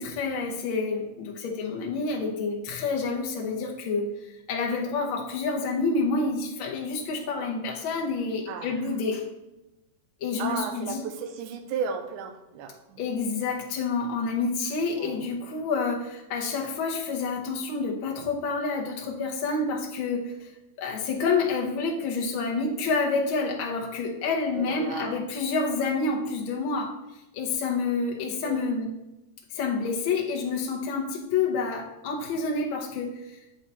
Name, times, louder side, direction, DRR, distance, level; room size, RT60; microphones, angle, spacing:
voice 1, 0.0-4.1 4.5-9.3 10.2-11.0 13.0-20.5 20.8-28.9 29.5-33.4, left 4 dB, 75° left, 0 dB, 1.2 m, -28 dB
voice 2, 8.5-8.9 10.4-13.1 15.0-15.3 24.6-25.2 28.4-28.7, right 6 dB, 85° right, 6 dB, 2.2 m, -34 dB
8.5 x 4.2 x 4.0 m, 0.94 s
omnidirectional pair, 3.4 m